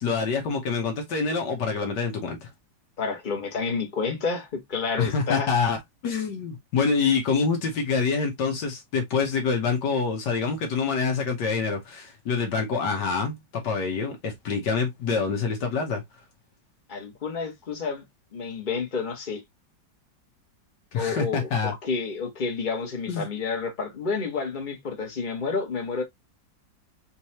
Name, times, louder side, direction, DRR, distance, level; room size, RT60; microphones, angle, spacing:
voice 1, 0.0-2.5 5.0-16.0 20.9-21.7 23.1-23.3, left 5 dB, 70° left, 1.5 m, -26 dB
voice 2, 3.0-5.5 16.9-18.0 18.3-19.4 20.9-26.0, left 4 dB, 30° left, 1.2 m, -30 dB
4.4 x 3.2 x 2.8 m
omnidirectional pair, 1.9 m